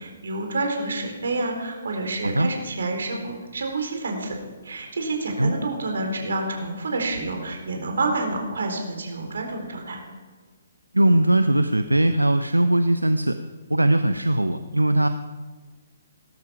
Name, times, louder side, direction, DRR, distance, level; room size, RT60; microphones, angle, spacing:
voice 1, 0.0-4.4 4.6-10.0, right 2 dB, 60° right, 3 dB, 4.0 m, -28 dB
voice 2, 10.9-13.4 13.7-15.1, right 1 dB, 85° right, 9 dB, 0.7 m, -20 dB
18.5 x 13.0 x 5.9 m, 1.4 s
figure-of-eight pair, 130°, 0 cm